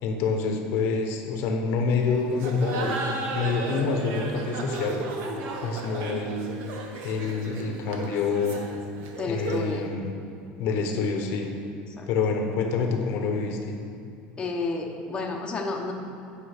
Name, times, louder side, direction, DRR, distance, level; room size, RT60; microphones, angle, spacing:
voice 1, 0.0-3.0 3.3-5.0 5.6-6.5 7.0-8.6 9.3-10.1 10.6-11.5 12.1-13.7, left 4 dB, 65° left, 3 dB, 1.0 m, -27 dB
Laughter, 2.3-9.8, right 3 dB, 70° right, 1.1 m, -34 dB
voice 2, 9.2-9.8 12.0-12.1 14.4-15.9, left 3 dB, 20° left, 0 dB, 1.1 m, -31 dB
10.5 x 5.3 x 5.0 m, 2.6 s
supercardioid pair, 125°, 4 cm